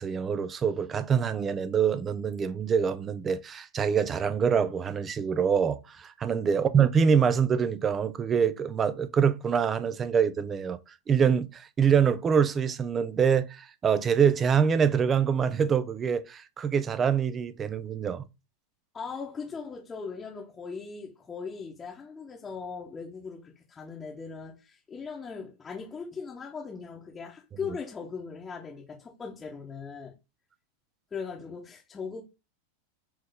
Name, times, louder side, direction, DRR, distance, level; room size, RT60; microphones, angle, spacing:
voice 1, 0.0-10.8 11.1-18.2, right 7 dB, 20° right, 0.4 m, -25 dB
voice 2, 18.9-30.1 31.1-32.2, left 5 dB, 15° left, 1.0 m, -39 dB
4.5 x 3.1 x 3.4 m
figure-of-eight pair, 90°, 0 cm